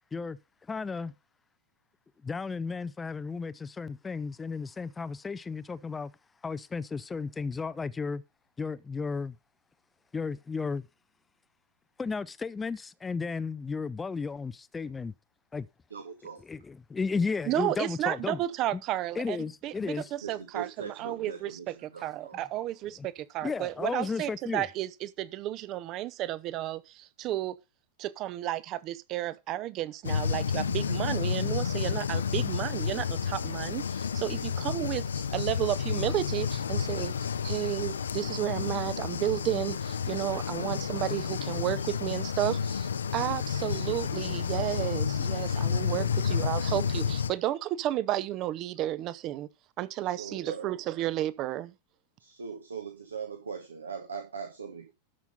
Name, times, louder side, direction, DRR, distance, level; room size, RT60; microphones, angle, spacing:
voice 1, 0.7-1.1 2.2-6.1 6.4-8.2 8.6-9.4 10.1-10.9 12.0-15.1 15.5-15.7 16.4-18.4 18.7-18.8 19.2-20.1 23.0-23.1 23.4-24.6, left 4 dB, 15° left, 0.5 m, -34 dB
voice 2, 15.9-16.4 20.2-21.7 21.9-22.4 46.0-46.1 50.2-50.7 52.2-54.9, right 6 dB, 70° right, 1.5 m, -40 dB
voice 3, 17.5-19.4 19.6-21.7 22.0-27.5 28.0-49.5 49.8-51.7, right 14 dB, 35° right, 0.8 m, -32 dB
sound 1, 30.0-47.3, left 6 dB, 70° left, 0.6 m, -30 dB
13.0 x 5.9 x 5.3 m
figure-of-eight pair, 90°, 0 cm